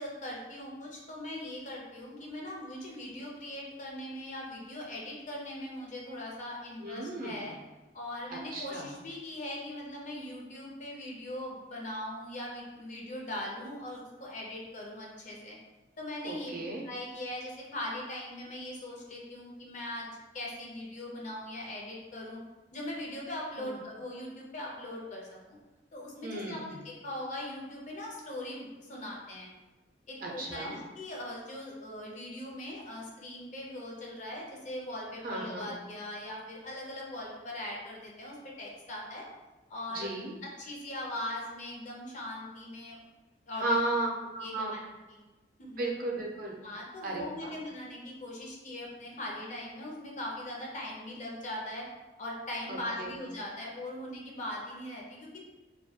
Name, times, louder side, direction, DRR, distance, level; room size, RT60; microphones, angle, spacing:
voice 1, 0.0-7.5 7.9-15.6 16.0-22.4 22.7-25.4 25.9-29.5 30.1-39.2 39.7-40.1 40.6-43.0 43.5-43.8 44.4-44.8 45.1-45.2 45.6-45.8 46.6-51.8 52.2-55.4, left 1 dB, 45° left, -3 dB, 0.6 m, -40 dB
voice 2, 6.8-7.5 8.3-8.9 16.2-16.8 23.6-23.7 26.2-26.8 30.2-30.8 35.2-35.7 39.9-40.3 43.6-44.7 45.8-46.5 47.0-47.5 52.7-53.1, right 2 dB, 50° right, -1 dB, 0.4 m, -34 dB
2.2 x 2.2 x 2.7 m, 1.2 s
head